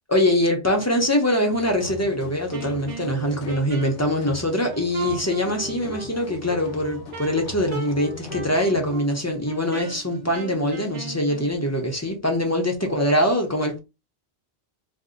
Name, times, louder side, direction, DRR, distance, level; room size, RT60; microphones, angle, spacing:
voice 1, 0.1-13.8, left 1 dB, 20° left, 0.5 m, -23 dB
sound 1, 1.5-9.0, left 4 dB, 80° left, 1.0 m, -41 dB
Wind instrument woodwind instrument, 2.5-11.5, right 5 dB, 70° right, 1.1 m, -37 dB
2.6 x 2.0 x 3.7 m
omnidirectional pair, 1.1 m